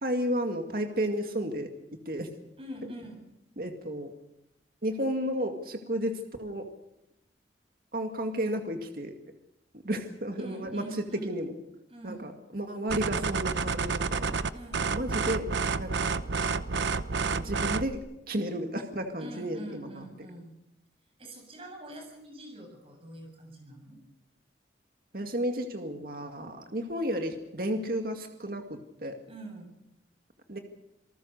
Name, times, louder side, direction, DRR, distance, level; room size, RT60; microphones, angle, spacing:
voice 1, 0.0-2.3 3.6-4.1 4.8-6.7 7.9-9.1 9.8-11.5 12.0-14.4 14.9-15.5 15.8-16.1 17.2-20.1 25.1-29.2 30.5-30.6, equal, 55° right, 5 dB, 2.2 m, -33 dB
voice 2, 2.6-3.2 10.4-11.4 11.9-12.4 14.5-15.0 19.2-20.6 21.2-24.0 29.3-29.7, right 1 dB, 30° right, 4 dB, 7.3 m, -44 dB
sound 1, 12.9-18.0, right 4 dB, 80° right, 0.9 m, -30 dB
27.5 x 19.0 x 6.7 m, 0.87 s
head